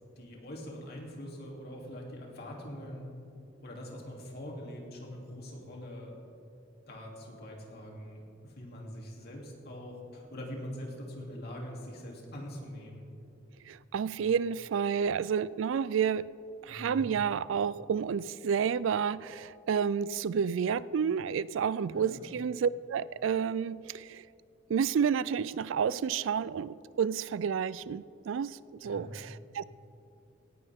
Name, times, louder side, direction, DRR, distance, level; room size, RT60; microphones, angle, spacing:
voice 1, 0.2-3.1 3.6-6.1 6.9-13.1 14.2-14.3 16.7-17.1 21.9-22.3 28.8-29.2, equal, 55° left, -1 dB, 2.9 m, -43 dB
voice 2, 13.6-16.3 16.6-24.3 24.7-29.6, right 7 dB, 65° right, 18 dB, 0.3 m, -30 dB
18.0 x 16.0 x 3.6 m, 2.6 s
head